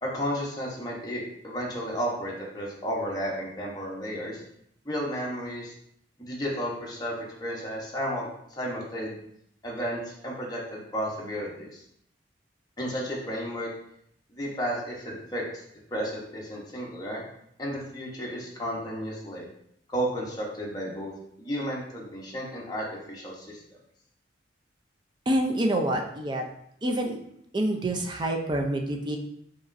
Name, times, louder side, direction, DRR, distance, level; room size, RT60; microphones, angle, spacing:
voice 1, 0.0-4.4 4.8-5.7 6.2-7.1 7.4-9.2 9.6-11.8 12.8-13.7 14.3-15.4 15.9-17.2 17.6-19.5 19.9-21.1 21.4-23.6, equal, 20° left, -4 dB, 1.0 m, -33 dB
voice 2, 25.3-26.4 26.8-27.2 27.5-29.2, right 1 dB, 25° right, 2 dB, 0.5 m, -27 dB
4.8 x 3.0 x 2.6 m, 0.72 s
head